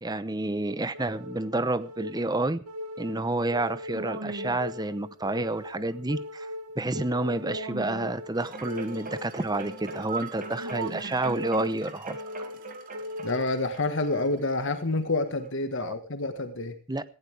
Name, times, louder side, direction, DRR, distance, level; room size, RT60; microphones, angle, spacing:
voice 1, 0.0-2.6 3.0-6.5 6.8-12.2 15.8-15.9 16.9-17.0, right 2 dB, 20° right, 15 dB, 0.9 m, -29 dB
Warning Sound MH, 0.9-13.9, equal, 90° right, 2.9 m, -39 dB
sound 1, 8.3-14.9 15.4-15.5, right 3 dB, 40° right, 2.6 m, -41 dB
voice 2, 13.2-16.7, left 2 dB, 55° left, 8 dB, 1.6 m, -28 dB
18.0 x 16.0 x 3.5 m, 0.35 s
head